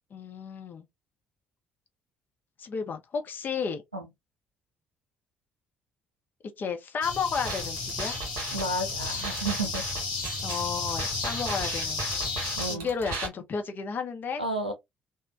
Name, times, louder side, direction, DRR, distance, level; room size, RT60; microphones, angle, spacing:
voice 1, 0.1-0.9 2.6-3.8 6.6-8.1 10.4-12.1 12.6-14.4, left 6 dB, 40° left, 0.7 m, -32 dB
sound 1, 7.0-12.8, left 4 dB, 75° left, 0.7 m, -33 dB
sound 2, 7.3-13.3, right 3 dB, 65° right, 1.0 m, -36 dB
voice 2, 8.5-9.9 12.6-12.9 14.4-14.7, right 2 dB, 90° right, 0.5 m, -31 dB
3.0 x 2.1 x 2.4 m
figure-of-eight pair, 45°, 5 cm